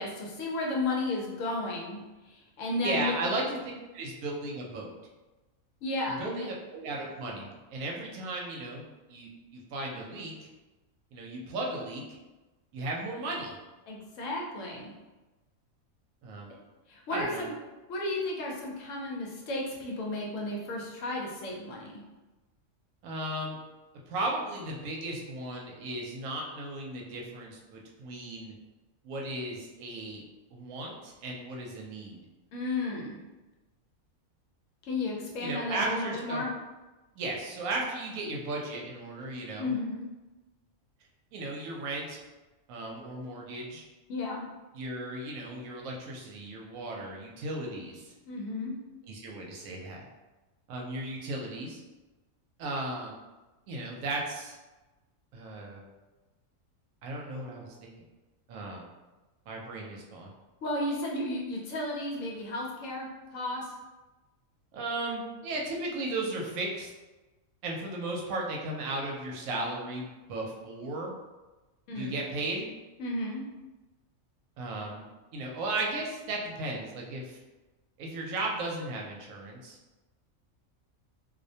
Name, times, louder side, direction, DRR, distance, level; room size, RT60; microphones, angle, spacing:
voice 1, 0.0-2.0 2.3-3.1 5.8-6.5 13.9-14.9 16.9-17.5 17.9-22.0 32.5-33.2 34.8-36.5 39.6-40.0 44.1-44.4 48.3-48.8 60.6-63.7 71.9-72.2 73.0-73.4, left 2 dB, 70° left, -2 dB, 0.9 m, -33 dB
voice 2, 2.8-3.6 3.9-4.9 6.1-8.8 9.1-10.3 11.1-12.0 12.7-13.6 16.2-16.5 17.1-17.5 23.0-23.6 24.1-28.5 29.0-30.2 30.5-32.2 35.4-36.4 37.1-39.7 41.3-42.2 42.7-43.8 44.7-48.1 49.0-50.0 50.7-51.8 52.6-53.2 53.7-54.6 55.3-55.8 57.0-57.9 58.5-58.8 59.5-60.3 64.7-66.9 67.6-71.1 71.9-72.7 74.6-75.0 75.3-77.4 78.0-79.8, right 2 dB, 80° right, -1 dB, 1.0 m, -35 dB
2.5 x 2.1 x 2.7 m, 1.1 s
omnidirectional pair, 1.4 m